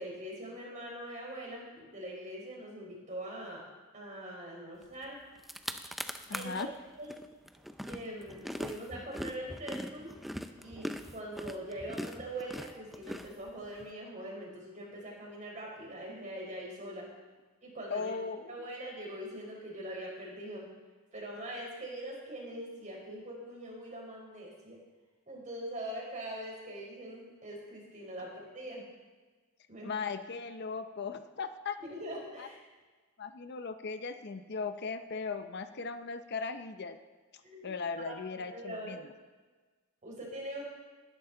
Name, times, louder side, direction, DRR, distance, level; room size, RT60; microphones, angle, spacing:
voice 1, 0.0-3.6 3.9-5.2 6.3-6.7 7.0-7.1 7.9-10.1 10.5-17.0 17.6-18.1 18.5-20.7 21.1-24.8 25.3-28.8 29.7-29.9 31.8-32.6 37.4-37.8 38.0-38.2 38.5-38.9 40.0-40.6, right 1 dB, 35° right, -2 dB, 4.5 m, -42 dB
sound 1, 5.0-5.1 5.4-6.6 7.1-13.8, equal, ahead, 0.5 m, -41 dB
voice 2, 6.3-6.7 17.9-18.7 29.8-31.8 32.4-32.5 33.2-37.0 37.6-39.1, left 4 dB, 50° left, 9 dB, 0.6 m, -38 dB
20.0 x 11.0 x 3.9 m, 1.3 s
head